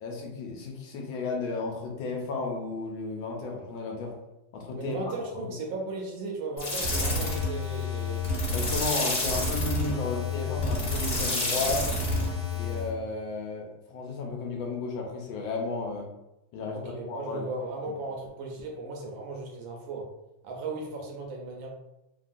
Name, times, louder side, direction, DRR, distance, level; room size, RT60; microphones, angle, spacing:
voice 1, 0.0-4.2 4.5-5.0 8.5-11.9 12.5-16.1 16.5-16.8 17.1-17.4 17.9-18.0, left 3 dB, 75° left, 0 dB, 1.2 m, -33 dB
voice 2, 4.7-8.3 16.7-20.1 20.4-21.7, right 3 dB, 75° right, 0 dB, 1.2 m, -36 dB
sound 1, 6.6-12.9, left 2 dB, 35° left, 1.2 m, -29 dB
3.4 x 2.2 x 2.5 m, 0.92 s
omnidirectional pair, 2.3 m